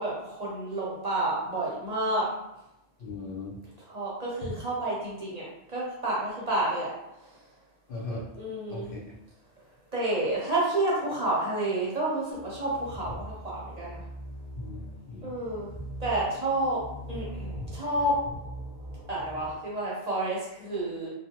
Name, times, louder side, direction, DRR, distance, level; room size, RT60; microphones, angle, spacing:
voice 1, 0.0-2.3 3.9-6.9 7.2-7.3 8.4-8.9 9.9-14.0 15.2-15.7 16.0-18.2 19.1-21.1, right 1 dB, 45° right, -6 dB, 0.7 m, -30 dB
voice 2, 3.0-3.6 4.4-4.5 7.9-8.3 8.7-9.1 14.5-15.3 17.6-17.7, left 2 dB, 60° left, -3 dB, 0.8 m, -38 dB
sound 1, 12.3-19.5, equal, 20° left, 0.9 m, -42 dB
2.7 x 2.2 x 2.8 m, 0.87 s
omnidirectional pair, 1.1 m